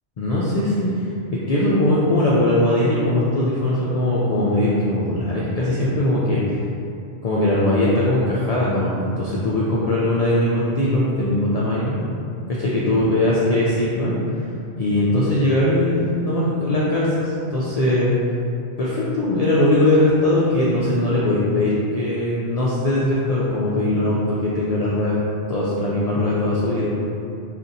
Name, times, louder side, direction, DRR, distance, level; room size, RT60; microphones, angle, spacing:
voice 1, 0.2-1.1 1.3-6.6 7.2-12.0 12.6-14.1 14.8-18.2 18.8-25.2 25.5-27.1, left 1 dB, 85° left, -7 dB, 0.3 m, -20 dB
2.7 x 2.5 x 3.9 m, 2.6 s
omnidirectional pair, 1.2 m